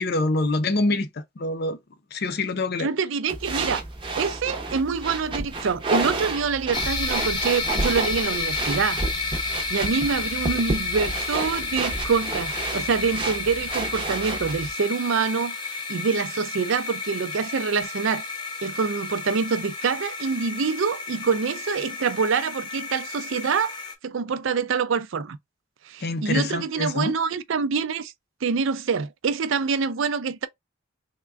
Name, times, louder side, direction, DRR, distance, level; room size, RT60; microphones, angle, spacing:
voice 1, 0.0-1.8 2.1-2.9 26.0-27.1, left 2 dB, 55° left, 0.5 m, -25 dB
voice 2, 2.8-3.8 4.2-9.4 9.7-18.3 18.6-23.8 24.0-25.4 25.8-28.1 28.4-30.5, right 5 dB, 80° right, 0.5 m, -26 dB
sound 1, 3.3-14.7, right 3 dB, 25° right, 0.6 m, -31 dB
sound 2, 6.7-23.9, left 4 dB, 25° left, 0.8 m, -31 dB
3.5 x 2.2 x 3.4 m
head